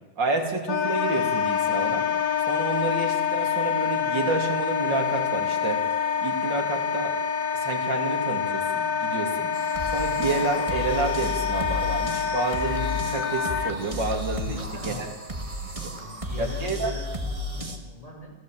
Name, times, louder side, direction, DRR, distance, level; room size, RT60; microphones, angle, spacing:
voice 1, 0.2-2.1 2.5-5.8 6.2-7.2 7.5-9.5 9.9-15.1 15.6-15.9 16.4-16.9, right 3 dB, 70° right, 2 dB, 3.6 m, -29 dB
Wind instrument woodwind instrument, 0.7-13.7, left 7 dB, 85° left, 2.1 m, -26 dB
sound 1, 9.5-17.8, left 1 dB, 20° right, 1.8 m, -33 dB
voice 2, 14.4-15.1 15.9-18.3, left 1 dB, 20° left, 0 dB, 5.7 m, -41 dB
28.5 x 15.0 x 7.7 m, 1.2 s
omnidirectional pair, 2.1 m